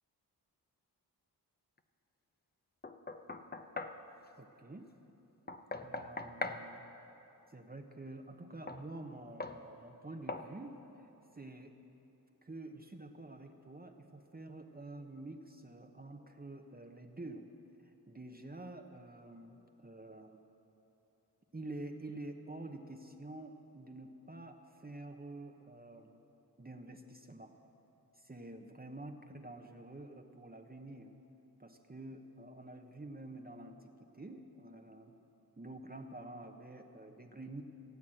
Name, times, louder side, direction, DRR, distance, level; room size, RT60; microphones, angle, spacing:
Knock, 2.8-4.0 5.5-6.6 8.7-8.8 9.4-9.6 10.3-10.5, left 3 dB, 25° left, 0.8 m, -41 dB
voice 1, 4.4-4.9 5.8-6.9 7.5-11.1 11.3-11.7 12.4-17.5 17.8-20.4 21.5-26.2 26.6-27.5 28.1-31.1 31.6-35.2 35.6-37.6, right 2 dB, 20° right, 4 dB, 1.0 m, -48 dB
17.0 x 8.4 x 7.7 m, 3.0 s
cardioid pair, 45°, 41 cm